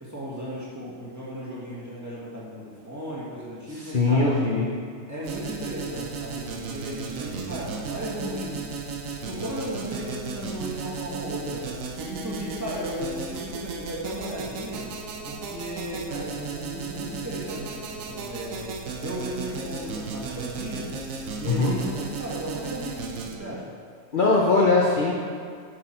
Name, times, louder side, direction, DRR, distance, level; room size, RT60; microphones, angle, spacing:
voice 1, 0.0-4.4 5.1-8.7 9.2-11.7 12.0-14.9 15.3-18.7 19.0-20.9 21.4-23.7, equal, 15° right, -8 dB, 1.7 m, -35 dB
voice 2, 3.7-4.7 21.5-21.8 24.1-25.1, left 3 dB, 45° left, -4 dB, 0.9 m, -21 dB
sound 1, 5.2-23.4, right 4 dB, 90° right, 1.2 m, -35 dB
7.9 x 6.2 x 4.4 m, 2.1 s
omnidirectional pair, 1.3 m